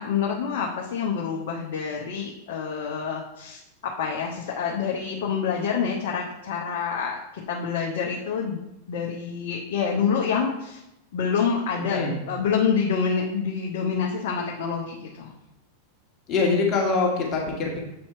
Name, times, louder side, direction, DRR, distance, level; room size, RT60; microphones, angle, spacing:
voice 1, 0.0-7.2 7.5-8.6 8.9-10.8 11.1-12.0 12.3-15.3, left 6 dB, 55° left, -2 dB, 0.8 m, -27 dB
voice 2, 11.8-12.2 16.3-17.8, left 4 dB, 30° left, -2 dB, 1.5 m, -24 dB
7.5 x 4.3 x 4.3 m, 0.89 s
figure-of-eight pair, 90°, 0 cm